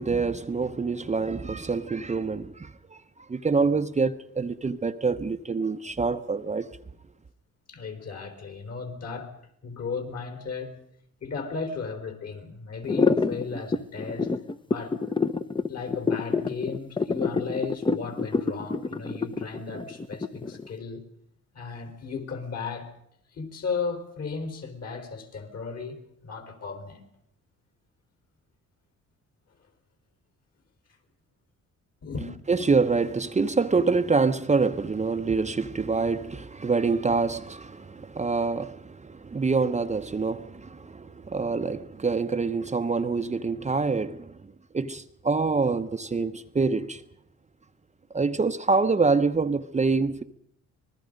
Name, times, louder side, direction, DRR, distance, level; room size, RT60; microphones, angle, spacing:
voice 1, 0.0-3.0 3.3-6.7 32.5-44.4 44.7-47.0 48.1-50.2, right 4 dB, 25° right, 0.9 m, -26 dB
voice 2, 7.7-9.3 9.6-10.8 11.2-14.3 14.7-15.0 15.6-21.0 21.5-22.9 23.3-27.0 32.0-32.3, left 5 dB, 55° left, 4.1 m, -35 dB
sound 1, 12.8-20.7, left 4 dB, 15° left, 0.9 m, -26 dB
25.5 x 20.0 x 5.2 m
cardioid pair, 90°, 30 cm